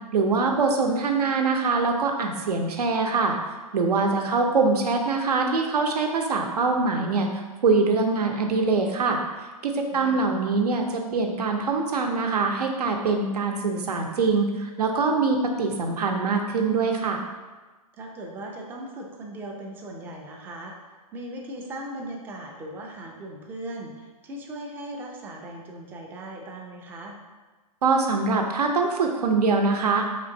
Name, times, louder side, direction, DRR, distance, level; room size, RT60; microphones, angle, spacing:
voice 1, 0.1-3.4 3.7-9.2 9.6-17.2 27.8-30.0, right 4 dB, 85° right, 3 dB, 0.7 m, -23 dB
voice 2, 9.9-10.3 18.0-20.7 21.1-27.2, right 1 dB, 10° right, 1 dB, 0.3 m, -38 dB
4.3 x 3.7 x 2.7 m, 1.3 s
hypercardioid pair, 145°, 20 cm